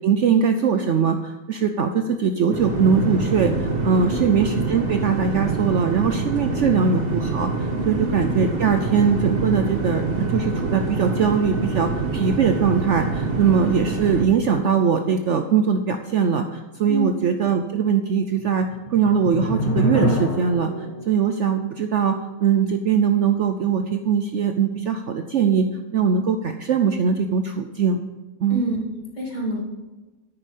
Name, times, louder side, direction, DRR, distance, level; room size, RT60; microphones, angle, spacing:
voice 1, 0.0-25.7 25.9-28.0 28.4-28.7, right 6 dB, 60° right, 7 dB, 0.9 m, -21 dB
sound 1, 2.5-14.2, right 3 dB, 40° right, 1.3 m, -25 dB
voice 2, 4.0-4.4 7.9-8.2 16.9-17.2 28.5-29.6, right 2 dB, 30° left, -2 dB, 2.7 m, -28 dB
sound 2, 18.4-21.1, equal, 10° left, 1.2 m, -27 dB
9.8 x 9.8 x 5.2 m, 1.2 s
omnidirectional pair, 1.6 m